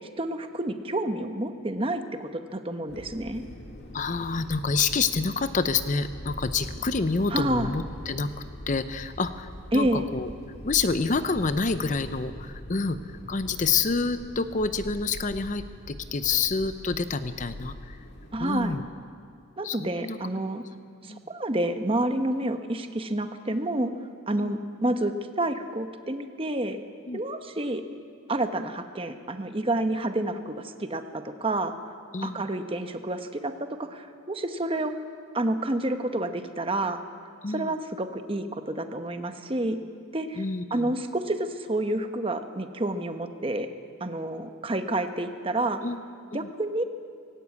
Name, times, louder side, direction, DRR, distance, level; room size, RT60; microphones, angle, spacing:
voice 1, 0.2-3.4 7.3-7.8 9.7-10.1 18.3-18.8 19.6-20.6 21.0-23.9 24.3-26.8 27.1-27.8 28.3-31.7 32.2-33.5 33.8-34.9 35.3-37.0 37.5-39.8 40.1-40.4 40.7-43.7 44.0-45.8 46.3-46.8, right 1 dB, 25° right, 7 dB, 0.9 m, -29 dB
sound 1, 2.9-18.8, equal, 50° left, 2.2 m, -42 dB
voice 2, 3.9-8.3 8.7-9.5 9.7-10.3 10.6-13.0 13.3-18.0 18.4-18.8 19.6-20.2 21.1-21.3 24.4-24.5 27.1-27.2 32.1-32.4 37.4-37.7 40.4-40.9 45.8-46.0 46.3-46.5, left 4 dB, 35° left, 11 dB, 0.6 m, -28 dB
18.0 x 17.0 x 8.4 m, 2.2 s
head